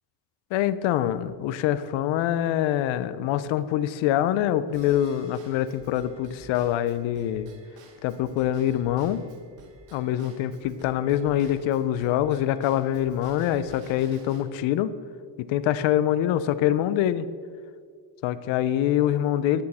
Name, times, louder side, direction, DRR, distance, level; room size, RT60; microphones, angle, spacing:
voice 1, 0.5-7.5 8.0-9.2 9.9-14.9 15.5-17.3 18.2-19.6, left 11 dB, 70° left, 14 dB, 0.6 m, -25 dB
Drum kit / Drum / Bell, 4.7-14.4, right 4 dB, 60° right, 1.4 m, -51 dB
11.0 x 6.4 x 4.2 m, 2.1 s
cardioid pair, 100°, 48 cm